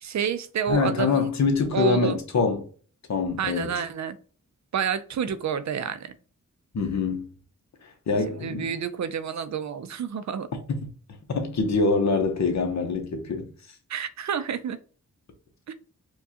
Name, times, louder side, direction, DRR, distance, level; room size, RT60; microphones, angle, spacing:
voice 1, 0.0-1.3 1.7-2.2 3.4-4.2 4.7-6.1 8.3-10.5 13.9-14.8 15.7-15.8, right 7 dB, 65° right, 0.5 m, -29 dB
voice 2, 0.7-2.6 3.1-3.7 6.7-7.3 8.1-8.7 11.3-13.5, left 4 dB, 60° left, 0.9 m, -24 dB
4.6 x 2.3 x 2.8 m
wide cardioid pair, 100°, 31 cm